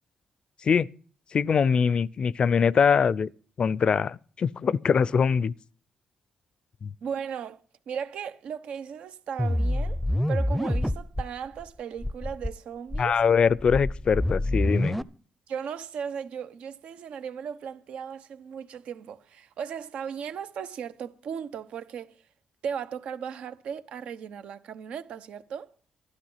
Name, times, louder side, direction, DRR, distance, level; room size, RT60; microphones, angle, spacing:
voice 1, 1.3-3.3 3.6-5.5 6.8-6.9 13.0-15.0, left 6 dB, 50° left, 0.5 m, -23 dB
voice 2, 7.0-7.6 7.9-10.0 10.3-13.2 15.5-22.1 22.6-25.7, right 7 dB, 75° right, 1.1 m, -36 dB
sound 1, 9.4-11.3 11.6-11.7 12.0-12.5 12.9-15.0, left 1 dB, 5° left, 0.6 m, -27 dB
12.0 x 11.5 x 5.7 m
cardioid pair, 75°, 2 cm